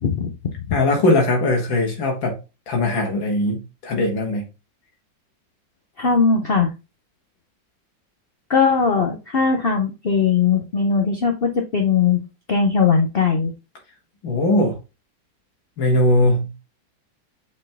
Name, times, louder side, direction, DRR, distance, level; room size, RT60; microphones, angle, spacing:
voice 1, 0.7-2.4 2.7-4.4 14.2-14.8 15.8-16.5, left 1 dB, 85° left, 2.4 m, -20 dB
voice 2, 6.0-6.7 8.5-12.2 12.5-13.5, left 5 dB, 60° left, 0.6 m, -19 dB
6.6 x 4.3 x 3.5 m
omnidirectional pair, 2.0 m